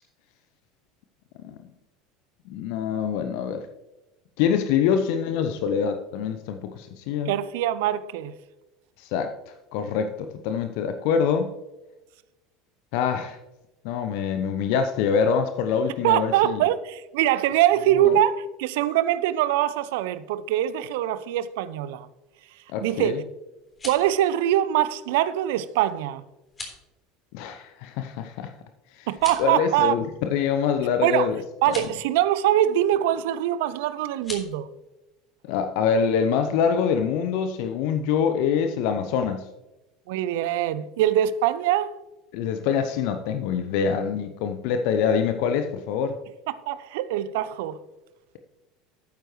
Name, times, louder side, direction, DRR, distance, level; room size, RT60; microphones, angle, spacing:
voice 1, 2.5-3.6 4.4-7.3 9.0-9.3 9.7-11.5 12.9-13.4 13.8-16.7 18.0-18.2 22.7-23.2 27.3-28.5 28.9-29.1 29.4-31.4 31.7-31.9 35.4-39.5 42.3-46.1, left 7 dB, 60° left, 0.6 m, -25 dB
voice 2, 7.3-8.3 16.0-22.1 22.8-23.2 23.8-26.2 29.1-29.9 31.0-31.3 31.6-34.7 40.1-41.9 46.7-47.8, right 12 dB, 65° right, 0.5 m, -23 dB
sound 1, 23.6-24.1 26.4-26.8 29.1-29.6 31.6-31.9 34.2-34.5, left 2 dB, 25° left, 3.6 m, -38 dB
12.0 x 9.0 x 3.1 m
figure-of-eight pair, 70°, 0 cm